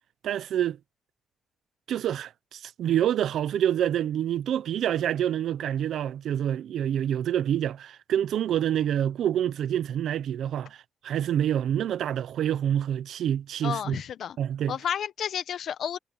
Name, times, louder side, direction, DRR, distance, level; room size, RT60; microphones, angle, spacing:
voice 1, 0.2-0.8 1.9-14.0 14.4-14.8, right 10 dB, 85° right, 0.7 m, -27 dB
voice 2, 13.6-14.4 14.7-16.0, left 9 dB, 70° left, 1.1 m, -31 dB
cardioid pair, 120°, 0 cm